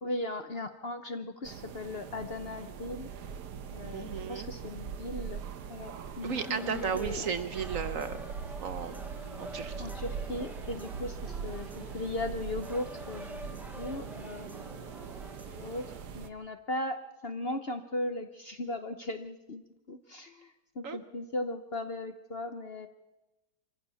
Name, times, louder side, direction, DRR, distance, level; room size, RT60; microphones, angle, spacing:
voice 1, 0.0-3.1 3.7-5.4 5.7-7.3 9.8-14.8 15.6-15.9 16.1-19.6 19.9-22.9, left 2 dB, 45° left, 8 dB, 0.9 m, -37 dB
sound 1, 1.4-16.3, right 6 dB, 70° right, 1.5 m, -41 dB
voice 2, 3.8-4.5 6.2-8.2 8.6-8.9 9.4-9.9 20.8-21.0, right 6 dB, 55° right, 11 dB, 1.2 m, -34 dB
sound 2, 6.2-16.1, equal, 5° right, 0.3 m, -48 dB
24.5 x 15.0 x 7.0 m, 1.0 s
omnidirectional pair, 1.8 m